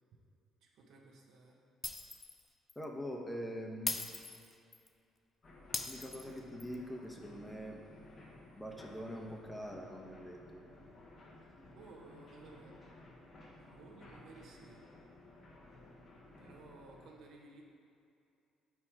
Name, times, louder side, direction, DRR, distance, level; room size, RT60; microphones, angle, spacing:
voice 1, 0.6-1.6 11.7-12.8 13.6-14.8 16.4-17.6, right 3 dB, 65° right, 0 dB, 0.8 m, -56 dB
Shatter, 1.8-2.4 2.7-2.8 3.9-4.9 5.7-6.7, left 3 dB, 30° left, 0.5 m, -40 dB
voice 2, 2.8-4.0 5.9-7.8 8.5-10.6, equal, 10° left, 1 dB, 0.9 m, -44 dB
sound 1, 5.4-17.1, left 2 dB, 50° left, 1.3 m, -56 dB
4.6 x 4.3 x 5.7 m, 2.5 s
hypercardioid pair, 55°, 0 cm